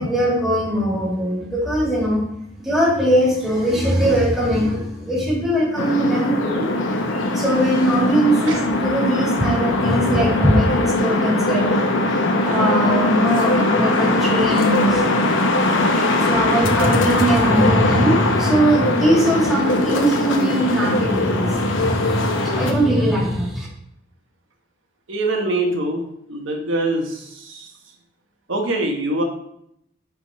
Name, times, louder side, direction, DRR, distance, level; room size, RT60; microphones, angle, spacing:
voice 1, 0.0-2.2 2.6-6.8 7.3-11.9 12.4-15.1 16.0-23.7, equal, ahead, -5 dB, 2.2 m, -20 dB
sound 1, 5.8-22.7, left 2 dB, 70° left, 0.8 m, -20 dB
voice 2, 25.1-27.7 28.5-29.2, right 2 dB, 70° right, 1 dB, 1.1 m, -24 dB
9.6 x 3.6 x 4.2 m, 0.74 s
head